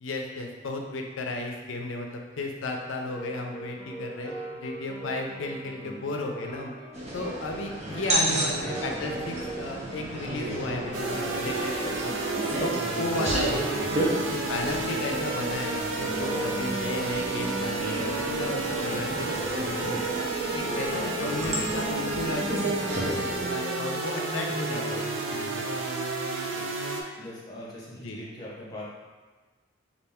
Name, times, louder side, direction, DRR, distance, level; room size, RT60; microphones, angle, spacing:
voice 1, 0.0-6.7 7.1-12.2 12.6-19.9 20.5-25.8 28.0-28.2, left 2 dB, 85° left, 2 dB, 0.5 m, -34 dB
sound 1, 3.0-22.2, right 1 dB, 5° left, 1.4 m, -42 dB
voice 2, 5.7-6.1 8.2-8.4 13.8-14.2 20.9-21.2 24.4-25.0 26.5-26.9 27.2-28.8, equal, 20° left, -7 dB, 1.0 m, -43 dB
sound 2, 6.9-23.5, right 1 dB, 35° right, 0.7 m, -32 dB
sound 3, 10.9-27.0, right 3 dB, 80° right, 0.5 m, -31 dB
4.2 x 2.4 x 3.5 m, 1.3 s
head